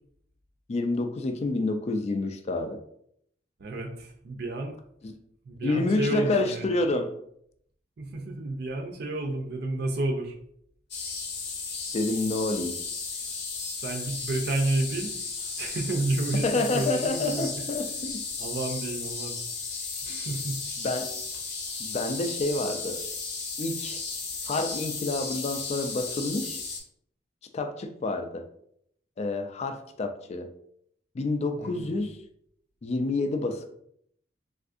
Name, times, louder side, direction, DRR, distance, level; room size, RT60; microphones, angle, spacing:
voice 1, 0.7-2.8 5.0-5.1 5.6-7.1 11.9-12.8 16.4-18.2 20.8-21.2 21.8-23.0 23.6-24.0 24.5-26.6 27.5-28.5 29.2-30.5 31.1-32.2 32.8-33.7, left 2 dB, 35° left, 6 dB, 0.3 m, -28 dB
voice 2, 3.6-4.8 5.5-6.8 8.0-10.3 13.8-15.2 15.6-17.5 18.4-19.4 20.0-20.6 31.6-32.0, right 2 dB, 60° right, 3 dB, 0.5 m, -31 dB
sound 1, 10.9-26.8, left 4 dB, 60° left, 0.7 m, -35 dB
3.5 x 2.4 x 2.5 m, 0.70 s
head